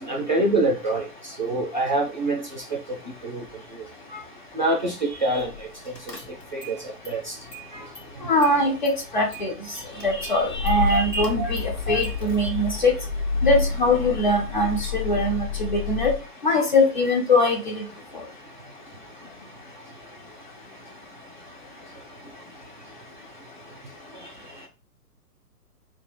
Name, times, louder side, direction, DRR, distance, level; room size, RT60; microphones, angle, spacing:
voice 1, 0.0-3.4 3.7-3.8 4.1-4.2 4.5-6.2 6.5-7.4 7.7-7.9 9.7-11.2 24.1-24.3, right 2 dB, 30° right, 0.4 m, -27 dB
Car / Engine starting, 5.4-5.6 6.0-6.8 7.1-8.1 8.4-16.2, left 4 dB, 85° left, 0.9 m, -30 dB
voice 2, 8.2-9.5 10.0-12.9 13.4-16.1 16.4-17.8, left 2 dB, 30° left, 0.5 m, -22 dB
2.3 x 2.1 x 3.2 m
figure-of-eight pair, 120°, 47 cm